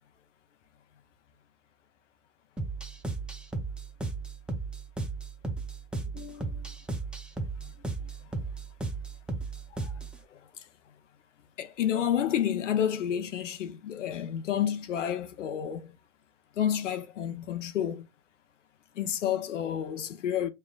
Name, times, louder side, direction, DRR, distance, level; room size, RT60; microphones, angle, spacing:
sound 1, 2.6-10.2, right 3 dB, 5° right, 0.4 m, -35 dB
voice 1, 6.1-6.7 9.7-9.9 10.3-10.4 11.6-15.9 16.6-18.1 19.0-20.5, left 9 dB, 85° left, 0.6 m, -30 dB
5.4 x 2.1 x 2.2 m
hypercardioid pair, 105°, 36 cm